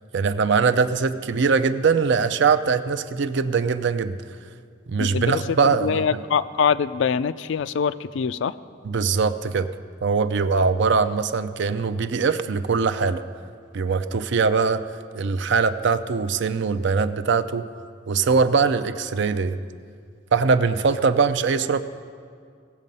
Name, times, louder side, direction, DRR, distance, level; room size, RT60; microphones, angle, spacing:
voice 1, 0.1-4.2 4.9-6.0 8.8-9.7 10.0-13.2 13.7-14.8 15.1-17.7 18.1-19.6 20.3-21.8, right 5 dB, 60° right, 11 dB, 0.5 m, -21 dB
voice 2, 5.0-8.5, left 6 dB, 65° left, 15 dB, 0.3 m, -24 dB
17.5 x 7.4 x 5.4 m, 2.2 s
head